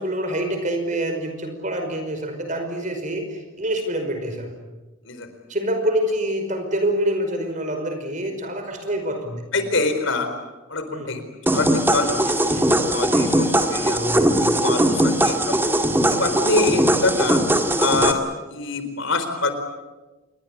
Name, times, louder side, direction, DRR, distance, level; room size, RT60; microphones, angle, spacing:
voice 1, 0.0-4.5 5.5-9.5 10.9-11.2 12.5-12.7 13.9-14.5, right 1 dB, 40° right, 6 dB, 5.2 m, -26 dB
voice 2, 9.5-10.3 10.7-11.2 11.5-12.6 12.9-14.0 14.4-15.8 16.1-17.4 17.8-18.2 18.5-19.5, left 3 dB, 70° left, 8 dB, 4.4 m, -25 dB
sound 1, 11.5-18.1, right 1 dB, 10° right, 2.0 m, -20 dB
27.5 x 23.0 x 8.5 m, 1.1 s
head